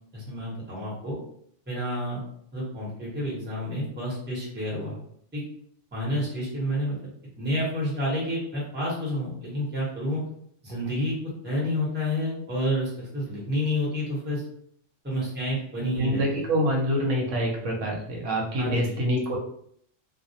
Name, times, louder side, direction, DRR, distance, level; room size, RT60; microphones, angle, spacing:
voice 1, 0.1-1.2 1.7-2.2 2.5-5.0 5.3-5.4 5.9-7.0 7.4-10.2 10.6-11.1 11.4-14.4 15.0-16.5 18.6-19.0, equal, 10° right, -6 dB, 0.7 m, -29 dB
voice 2, 16.0-19.4, equal, 75° right, -1 dB, 1.0 m, -26 dB
2.3 x 2.0 x 2.7 m, 0.66 s
omnidirectional pair, 1.3 m